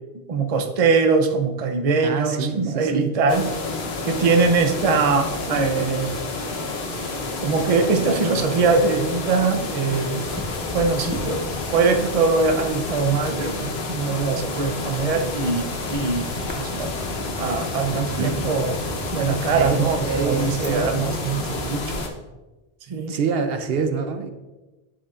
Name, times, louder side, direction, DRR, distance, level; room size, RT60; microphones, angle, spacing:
voice 1, 0.3-3.5 4.0-6.1 7.4-10.2 10.7-16.3 16.6-16.9 17.4-18.8 19.1-22.0 22.9-23.2, right 4 dB, 40° right, 5 dB, 0.6 m, -22 dB
voice 2, 2.0-3.1 11.3-11.5 18.2-18.3 19.5-20.9 23.1-24.3, right 6 dB, 70° right, 7 dB, 0.8 m, -26 dB
sound 1, 3.3-22.1, left 3 dB, 80° left, 1.1 m, -30 dB
sound 2, 10.2-22.0, equal, 10° right, 1.0 m, -37 dB
11.0 x 5.2 x 2.4 m, 1.1 s
omnidirectional pair, 1.0 m